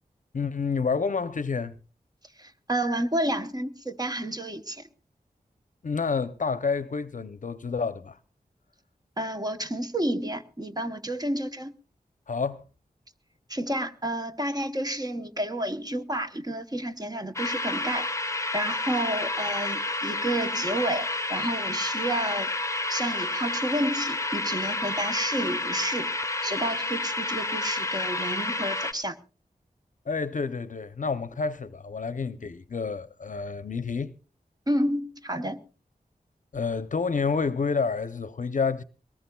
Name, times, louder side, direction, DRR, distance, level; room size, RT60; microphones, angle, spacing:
voice 1, 0.3-1.7 5.8-8.2 12.3-12.6 30.1-34.1 36.5-38.8, left 5 dB, 55° left, 0.6 m, -29 dB
voice 2, 2.4-4.9 9.2-11.7 13.5-18.1 18.5-22.5 22.9-26.1 26.4-29.2 34.7-35.6, right 1 dB, 25° right, 0.9 m, -30 dB
sound 1, 17.4-28.9, left 2 dB, 20° left, 0.7 m, -30 dB
21.5 x 18.5 x 2.3 m
wide cardioid pair, 85°, 15 cm